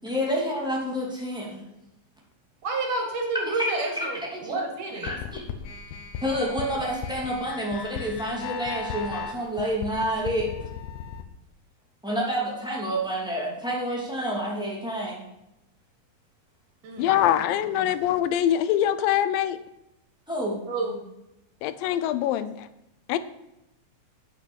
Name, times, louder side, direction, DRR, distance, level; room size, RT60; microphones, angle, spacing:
voice 1, 0.0-1.6 3.6-4.6 5.0-5.4 6.2-10.5 12.0-15.2 20.3-20.6, equal, ahead, -3 dB, 2.2 m, -29 dB
voice 2, 2.6-5.1 16.8-17.9 20.7-21.0, right 3 dB, 70° right, 0 dB, 3.7 m, -31 dB
sound 1, 5.1-11.2, left 7 dB, 70° left, 2.2 m, -36 dB
voice 3, 17.0-19.6 21.6-22.5 23.1-23.2, left 11 dB, 90° left, 13 dB, 2.4 m, -23 dB
8.8 x 8.3 x 6.4 m, 0.87 s
omnidirectional pair, 3.9 m